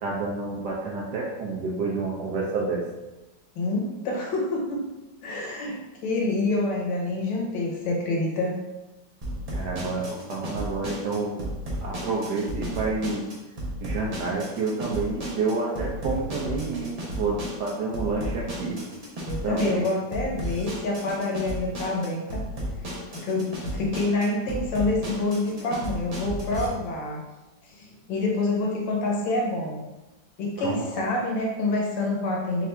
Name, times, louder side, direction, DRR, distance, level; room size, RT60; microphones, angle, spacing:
voice 1, 0.0-2.8 9.5-11.5 11.8-13.2 13.8-18.8 19.4-19.8 30.6-30.9, right 3 dB, 70° right, -3 dB, 1.2 m, -29 dB
voice 2, 3.6-4.9 5.2-8.6 19.3-22.4 22.9-27.2 27.7-29.8 30.4-32.7, left 2 dB, 75° left, -1 dB, 1.6 m, -27 dB
sound 1, 9.2-26.7, equal, 50° right, 0.4 m, -34 dB
4.5 x 2.5 x 4.3 m, 1.1 s
omnidirectional pair, 2.0 m